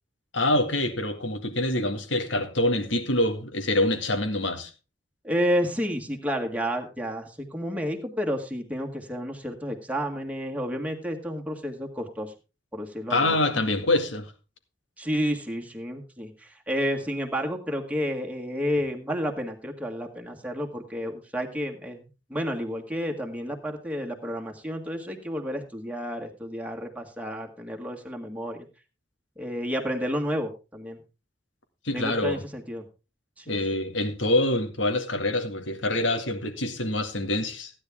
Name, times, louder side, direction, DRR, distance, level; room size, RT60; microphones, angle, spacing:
voice 1, 0.3-4.7 13.1-14.3 31.8-32.4 33.5-37.7, left 1 dB, 90° left, 7 dB, 2.1 m, -25 dB
voice 2, 5.2-12.3 12.7-13.3 15.0-28.7 29.4-31.0 31.9-32.9 33.4-33.8, equal, 10° right, 1 dB, 1.8 m, -31 dB
15.0 x 10.0 x 3.5 m, 0.32 s
head